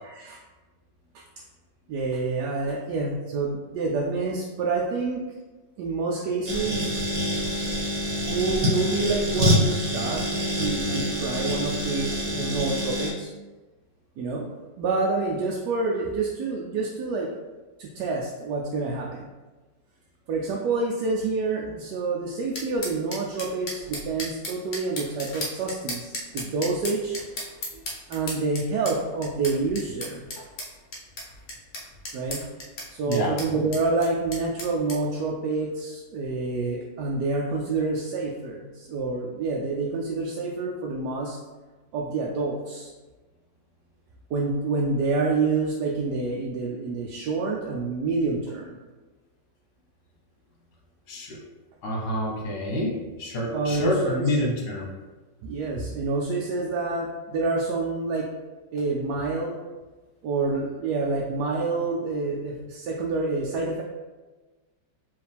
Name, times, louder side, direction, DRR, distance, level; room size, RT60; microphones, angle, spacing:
voice 1, 0.0-0.4 1.9-5.2 5.8-7.0 8.3-10.2 10.5-13.3 14.2-14.5 14.8-17.3 17.8-19.3 20.3-27.2 27.7-27.8 28.1-30.3 32.1-32.4 32.9-41.4 41.9-42.9 44.3-48.8 53.5-54.2 55.4-58.3 58.7-59.5 60.2-63.8, right 3 dB, 75° right, -2 dB, 1.1 m, -28 dB
sound 1, 6.5-13.1, left 1 dB, 45° right, 1.3 m, -26 dB
sound 2, 22.6-35.0, left 1 dB, 50° left, 1.1 m, -36 dB
voice 2, 51.8-54.9, left 1 dB, 65° left, -2 dB, 1.5 m, -27 dB
4.7 x 3.1 x 3.4 m, 1.2 s
omnidirectional pair, 1.9 m